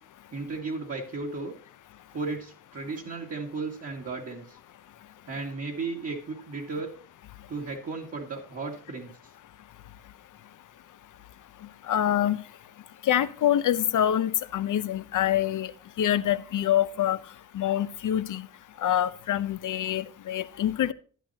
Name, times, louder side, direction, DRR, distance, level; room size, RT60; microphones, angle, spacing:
voice 1, 0.3-1.5 2.1-4.6 5.3-6.9 7.5-9.1, right 3 dB, 50° right, 2.0 m, -35 dB
voice 2, 11.9-12.4 13.0-15.7 16.0-17.2 17.5-18.5 18.8-20.9, left 11 dB, 70° left, 0.7 m, -25 dB
11.0 x 10.0 x 2.8 m
wide cardioid pair, 130°, 32 cm